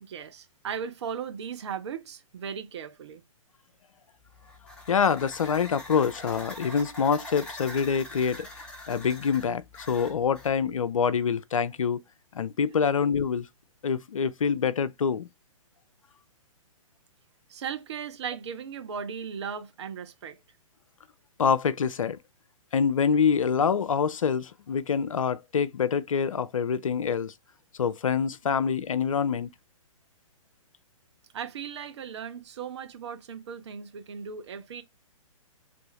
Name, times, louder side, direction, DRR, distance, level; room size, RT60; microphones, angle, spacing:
voice 1, 0.0-3.2 17.5-20.4 31.3-34.8, right 7 dB, 50° right, 0.7 m, -37 dB
sound 1, 4.3-10.5, left 2 dB, 5° left, 0.9 m, -43 dB
voice 2, 4.9-8.5 8.9-12.0 12.3-13.5 13.8-15.3 21.4-22.2 22.7-27.3 27.8-29.5, left 6 dB, 70° left, 0.4 m, -26 dB
3.4 x 2.6 x 3.0 m
figure-of-eight pair, 120°, 18 cm